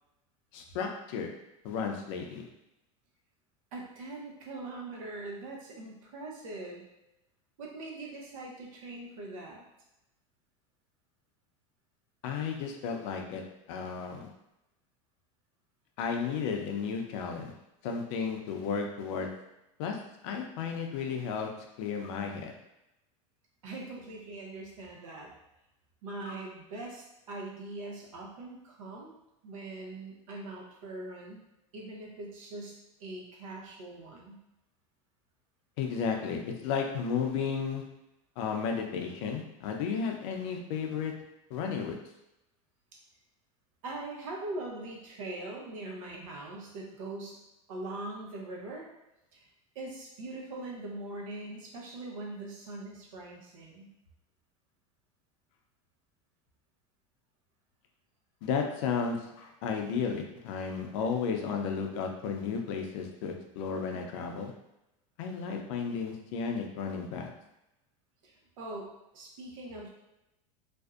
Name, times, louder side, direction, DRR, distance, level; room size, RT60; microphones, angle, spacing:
voice 1, 0.5-1.3 1.6-2.5 12.2-13.4 13.7-14.3 16.0-17.5 17.8-19.3 19.8-20.0 20.2-21.5 21.8-22.5 26.3-26.4 35.8-37.8 38.4-41.1 41.5-42.0 58.4-64.5 65.2-67.3, left 6 dB, 65° left, 2 dB, 0.5 m, -33 dB
voice 2, 3.7-6.8 7.6-9.6 23.6-25.3 26.0-29.1 29.4-31.4 31.7-34.4 43.8-47.4 47.7-48.9 49.3-49.5 49.7-53.9 68.2-69.9, right 2 dB, 90° right, -1 dB, 0.7 m, -42 dB
2.5 x 2.0 x 2.3 m, 0.90 s
supercardioid pair, 130°, 17 cm